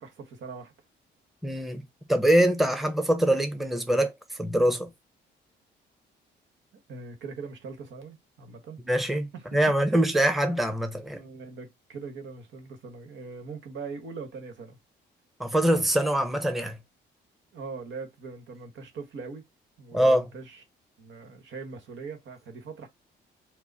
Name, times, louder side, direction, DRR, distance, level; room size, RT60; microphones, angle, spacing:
voice 1, 0.0-0.7 6.9-8.8 9.3-9.6 11.1-14.8 17.5-19.4 19.8-20.6 21.0-22.9, right 4 dB, 70° right, 1.4 m, -41 dB
voice 2, 1.4-1.8 2.1-4.9 8.8-11.2 15.4-16.8 19.9-20.3, right 1 dB, ahead, 0.9 m, -24 dB
4.6 x 2.2 x 4.2 m
cardioid pair, 90°, 20 cm